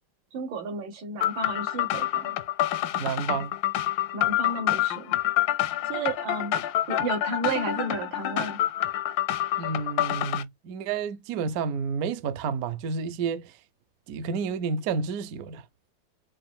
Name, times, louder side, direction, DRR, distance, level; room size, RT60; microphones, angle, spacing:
voice 1, 0.3-2.4 4.1-5.2 5.9-6.6 6.9-8.6, right 3 dB, 90° right, 2.0 m, -32 dB
sound 1, 1.2-10.4, left 13 dB, 80° left, 1.3 m, -27 dB
voice 2, 3.0-3.5 9.6-13.5 14.1-15.6, right 5 dB, 70° right, 0.9 m, -30 dB
5.6 x 2.5 x 3.5 m
omnidirectional pair, 2.1 m